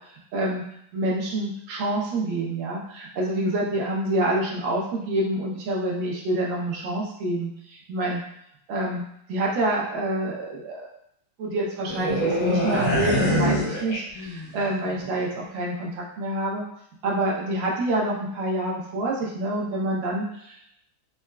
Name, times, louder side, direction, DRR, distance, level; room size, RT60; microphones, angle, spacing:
voice 1, 0.3-0.6 0.9-8.2 8.7-9.0 9.3-10.9 11.4-16.6 17.0-20.6, right 1 dB, 75° right, -3 dB, 1.5 m, -27 dB
sound 1, 11.9-14.6 14.8-15.1, equal, 40° left, 0.8 m, -24 dB
4.1 x 2.3 x 2.2 m, 0.73 s
omnidirectional pair, 2.2 m